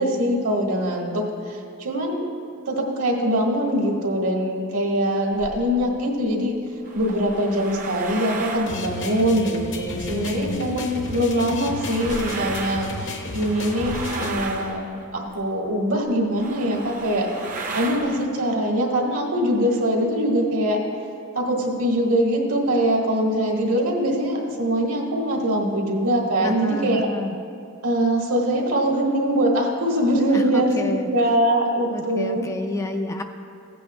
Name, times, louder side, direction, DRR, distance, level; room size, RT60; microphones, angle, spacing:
voice 1, 0.0-2.2 2.6-6.5 6.9-14.8 15.1-17.3 17.7-20.8 21.3-27.1 27.8-32.5, equal, 70° right, -1 dB, 1.5 m, -23 dB
sound 1, 5.3-5.9 6.7-10.6 11.0-15.6 16.1-16.2 16.4-18.3, right 3 dB, 40° right, 0.7 m, -35 dB
sound 2, 8.7-14.3, left 1 dB, 55° left, 0.8 m, -33 dB
voice 2, 10.1-10.7 26.4-27.4 30.3-31.1 31.9-33.2, left 1 dB, 15° left, 5 dB, 0.3 m, -29 dB
15.5 x 8.4 x 2.2 m, 2.4 s
head